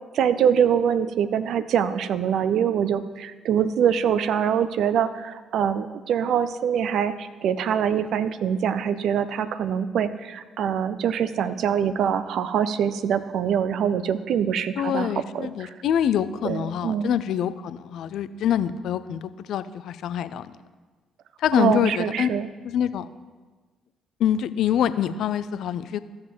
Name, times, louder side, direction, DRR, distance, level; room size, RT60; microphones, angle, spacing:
voice 1, 0.1-15.1 15.3-15.7 16.4-17.1 21.5-22.5, right 8 dB, 60° right, 12 dB, 0.5 m, -24 dB
voice 2, 14.8-20.5 21.4-22.3 22.6-23.1 24.2-26.0, left 9 dB, 65° left, 14 dB, 0.4 m, -25 dB
14.0 x 7.2 x 3.1 m, 1.4 s
figure-of-eight pair, 45°, 0 cm